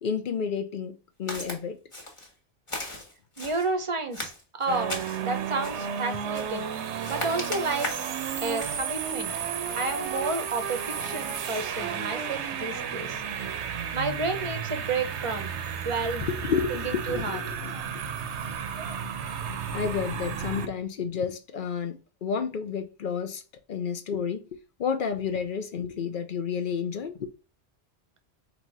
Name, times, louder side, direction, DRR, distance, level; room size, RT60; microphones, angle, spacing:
voice 1, 0.0-1.8 16.2-17.8 19.7-23.4 23.7-27.3, left 6 dB, 55° left, 0.7 m, -31 dB
Walk footsteps, 1.3-1.6 1.9-2.3 2.7-3.7 4.1-5.2 5.6-5.9 6.3-6.7 7.0-8.2 8.6-8.8, left 1 dB, 30° left, 1.2 m, -37 dB
voice 2, 3.4-4.3 4.6-6.7 7.1-7.9 8.4-9.3 9.8-13.2 13.9-15.6 15.8-16.2 16.7-17.4, right 3 dB, 30° right, 0.7 m, -31 dB
Import car revs on Chassis Dyno with Turbo, 4.7-20.7, right 7 dB, 80° right, 0.9 m, -33 dB
3.9 x 2.7 x 4.7 m
omnidirectional pair, 1.2 m